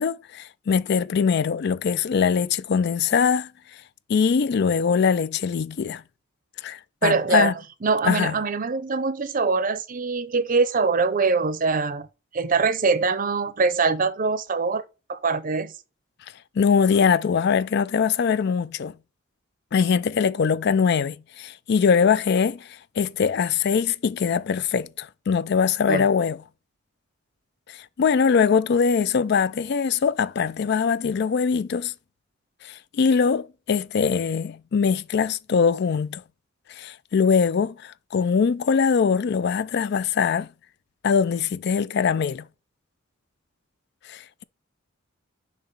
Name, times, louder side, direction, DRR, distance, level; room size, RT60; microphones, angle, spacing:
voice 1, 0.0-3.5 4.1-6.0 6.6-7.5 8.0-8.3 16.6-18.9 19.7-22.7 23.0-26.4 28.0-31.9 32.6-36.2 36.7-40.5 41.0-42.5 44.1-44.4, left 6 dB, 55° left, 0.4 m, -22 dB
voice 2, 7.0-12.1 12.3-14.8 15.1-15.7 25.9-26.1, right 4 dB, 40° right, 0.6 m, -23 dB
6.7 x 2.9 x 5.6 m
head